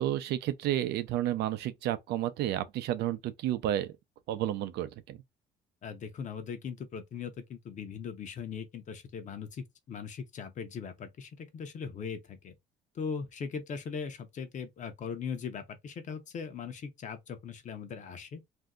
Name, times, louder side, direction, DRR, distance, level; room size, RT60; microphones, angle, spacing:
voice 1, 0.0-3.9 4.3-5.2, right 12 dB, 75° right, 0.5 m, -31 dB
voice 2, 5.8-12.5 12.9-18.4, left 6 dB, 45° left, 0.8 m, -39 dB
2.7 x 2.2 x 3.6 m
cardioid pair, 110°, 17 cm